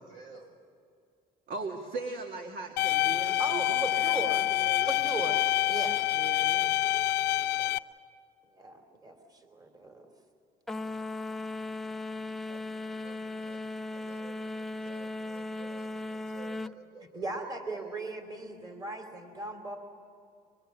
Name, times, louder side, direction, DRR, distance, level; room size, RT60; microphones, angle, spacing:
voice 1, 0.1-0.6 1.5-1.7 3.5-4.0 5.5-5.9 7.5-7.8 12.5-18.2, right 3 dB, 75° right, 4 dB, 4.7 m, -53 dB
voice 2, 1.5-5.0 6.1-6.7, right 3 dB, 60° right, 3 dB, 2.0 m, -40 dB
sound 1, 2.8-7.8, left 15 dB, 80° left, 0.6 m, -27 dB
voice 3, 3.4-4.4 4.8-5.4 5.7-6.1 8.6-10.1 17.1-19.8, right 2 dB, 25° right, 5 dB, 2.9 m, -37 dB
sound 2, 10.7-16.8, left 2 dB, ahead, 0.6 m, -37 dB
23.5 x 23.0 x 8.2 m, 2.3 s
cardioid pair, 110°, 17 cm